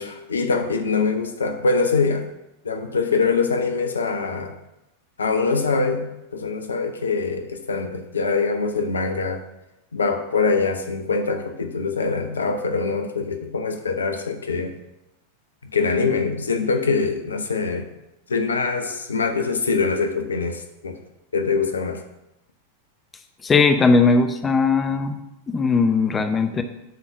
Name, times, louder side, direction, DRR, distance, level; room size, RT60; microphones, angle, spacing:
voice 1, 0.0-2.3 2.6-4.5 5.2-6.1 6.3-9.4 9.9-14.8 15.7-17.9 18.3-21.0 21.3-22.0, left 4 dB, 70° left, 6 dB, 0.8 m, -23 dB
voice 2, 23.4-26.6, left 4 dB, 20° left, 8 dB, 0.6 m, -19 dB
9.2 x 4.0 x 5.8 m, 0.90 s
figure-of-eight pair, 90°, 0 cm